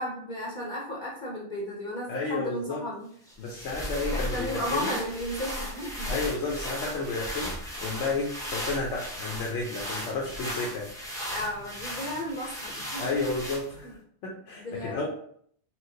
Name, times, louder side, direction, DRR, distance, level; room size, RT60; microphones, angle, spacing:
voice 1, 0.0-3.1 4.1-6.2 11.3-13.0 13.8-13.9 14.6-15.1, left 1 dB, 50° left, -3 dB, 0.7 m, -34 dB
voice 2, 2.1-2.8 3.4-5.0 6.1-10.9 13.0-15.1, left 3 dB, 85° left, -2 dB, 1.0 m, -32 dB
sound 1, 3.3-13.9, equal, 5° left, 0.5 m, -36 dB
4.4 x 2.0 x 2.7 m, 0.62 s
omnidirectional pair, 1.2 m